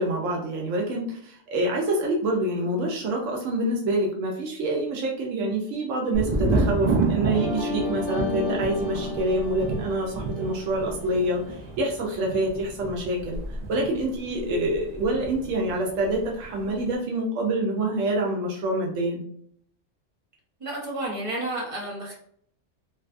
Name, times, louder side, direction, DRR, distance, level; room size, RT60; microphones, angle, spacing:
voice 1, 0.0-13.4 13.7-19.2, right 1 dB, 85° right, -1 dB, 0.9 m, -26 dB
Thunder, 6.1-15.8 16.0-16.8, right 3 dB, 60° right, 0.4 m, -30 dB
sound 1, 7.3-12.0, left 2 dB, 60° left, 0.8 m, -33 dB
voice 2, 20.6-22.1, right 1 dB, 30° right, -5 dB, 0.8 m, -31 dB
2.6 x 2.2 x 2.4 m, 0.64 s
omnidirectional pair, 1.3 m